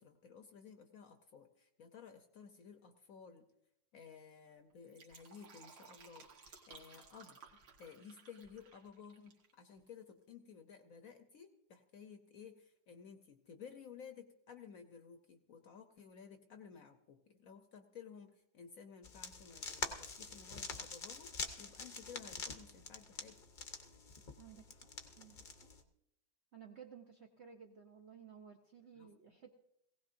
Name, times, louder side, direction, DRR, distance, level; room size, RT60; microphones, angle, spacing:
voice 1, 0.0-3.5 3.9-23.4 28.9-29.1, left 6 dB, 60° left, 7 dB, 1.0 m, -55 dB
Fill (with liquid), 4.7-9.5 9.8-9.9, right 5 dB, 75° right, 2.1 m, -59 dB
sound 1, 19.0-25.8, left 4 dB, 45° left, 0.7 m, -46 dB
voice 2, 24.4-24.9 25.2-25.4 26.5-29.6, right 7 dB, 55° right, 2 dB, 0.7 m, -56 dB
19.0 x 16.5 x 2.6 m, 0.80 s
omnidirectional pair, 2.0 m